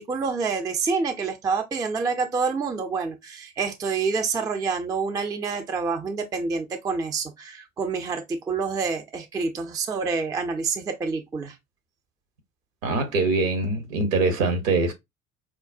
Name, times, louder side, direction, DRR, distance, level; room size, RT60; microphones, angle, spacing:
voice 1, 0.0-11.6, right 4 dB, 10° right, 0.3 m, -27 dB
voice 2, 12.8-14.9, right 3 dB, 70° right, 1.0 m, -23 dB
4.7 x 2.0 x 2.4 m
figure-of-eight pair, 60°, 42 cm